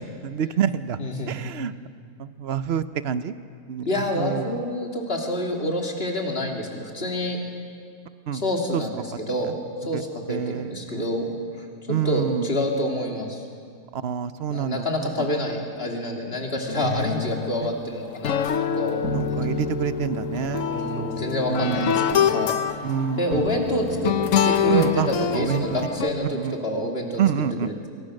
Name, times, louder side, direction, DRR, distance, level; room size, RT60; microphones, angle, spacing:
voice 1, 0.2-1.0 1.3-1.7 2.2-3.3 3.7-4.5 8.3-8.5 8.7-8.8 9.5-9.6 9.9-10.0 10.3-11.1 11.9-12.5 13.9-15.3 16.8-17.2 17.6-17.7 19.1-20.7 20.9-21.1 21.5-22.0 22.8-23.8 24.6-25.8 26.3-26.6 27.2-27.7, right 8 dB, 55° right, 13 dB, 0.8 m, -27 dB
voice 2, 1.0-1.3 3.9-7.4 8.3-11.3 11.5-11.6 12.0-13.4 14.5-19.0 20.6-22.6 23.2-24.1 24.4-27.2 27.6-27.9, left 1 dB, 40° left, 1 dB, 3.2 m, -28 dB
sound 1, 16.7-26.1, left 9 dB, 60° left, 1.2 m, -26 dB
sound 2, 19.0-26.2, right 1 dB, 85° left, 4.7 m, -34 dB
27.0 x 23.0 x 6.5 m, 2.2 s
omnidirectional pair, 1.6 m